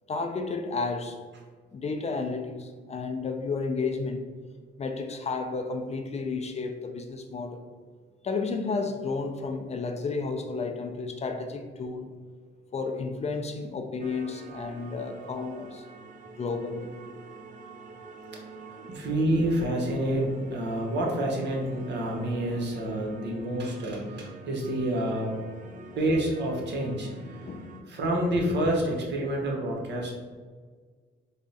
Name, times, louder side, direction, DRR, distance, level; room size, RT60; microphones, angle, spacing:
voice 1, 0.1-1.2 1.7-4.2 4.8-7.6 8.2-12.1 12.7-15.8 16.4-16.9 27.4-27.8, left 4 dB, 35° left, 5 dB, 0.4 m, -32 dB
sound 1, 14.0-27.8, right 3 dB, 40° right, 0.5 m, -46 dB
voice 2, 18.8-25.4 26.0-27.5 27.9-30.1, right 1 dB, 60° right, 0 dB, 0.9 m, -28 dB
3.5 x 2.0 x 3.9 m, 1.5 s
cardioid pair, 90°, 20 cm